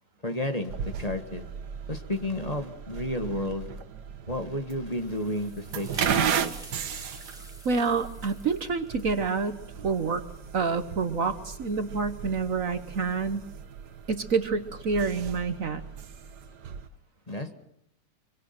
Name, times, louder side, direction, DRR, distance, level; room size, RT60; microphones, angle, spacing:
voice 1, 0.2-1.4 1.9-3.7 4.3-6.6 17.3-17.5, left 1 dB, 20° left, 6 dB, 1.9 m, -32 dB
sound 1, 0.7-16.9, right 8 dB, 75° right, 1.7 m, -36 dB
sound 2, 4.9-10.5, equal, ahead, 5.0 m, -49 dB
voice 2, 7.6-10.2 10.5-13.4 14.1-15.8, right 4 dB, 55° right, 10 dB, 1.5 m, -28 dB
26.0 x 24.5 x 6.0 m, 0.73 s
omnidirectional pair, 1.8 m